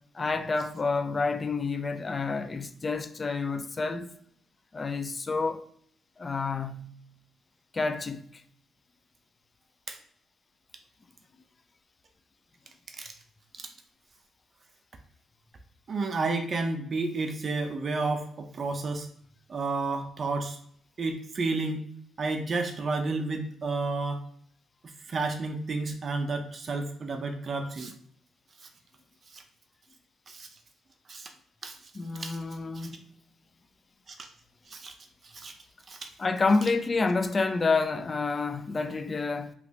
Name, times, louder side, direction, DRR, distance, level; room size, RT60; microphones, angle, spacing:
voice 1, 0.1-4.1 4.7-5.7 6.2-6.9 7.7-8.2 31.9-33.0 36.2-39.5, left 4 dB, 30° left, 0.4 m, -28 dB
voice 2, 15.9-19.1 19.5-20.6 21.0-21.9 22.2-24.2 25.1-27.9 28.6-28.7 29.3-29.4 30.3-30.5 31.1-31.3 31.6-31.8 32.1-32.4 32.7-32.9 34.1-34.3 34.7-34.9 35.2-35.5 35.9-36.1, right 3 dB, 40° right, 0.4 m, -31 dB
3.0 x 2.4 x 3.2 m
cardioid pair, 90°, 0 cm